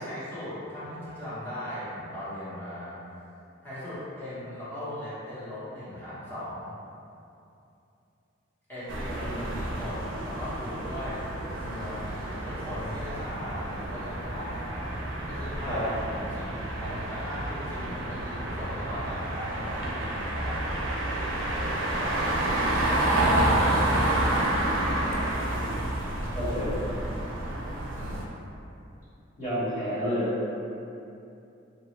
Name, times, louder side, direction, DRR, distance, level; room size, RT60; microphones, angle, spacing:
voice 1, 0.0-2.9 3.6-6.7 8.7-14.8 15.3-20.6 22.0-24.8 27.9-28.2, equal, 10° left, -13 dB, 0.9 m, -38 dB
sound 1, 8.9-28.2, right 1 dB, 85° right, 0.4 m, -29 dB
voice 2, 25.5-25.9 26.3-26.8 29.4-30.3, equal, 40° left, -14 dB, 1.4 m, -30 dB
2.9 x 2.3 x 3.0 m, 2.7 s
head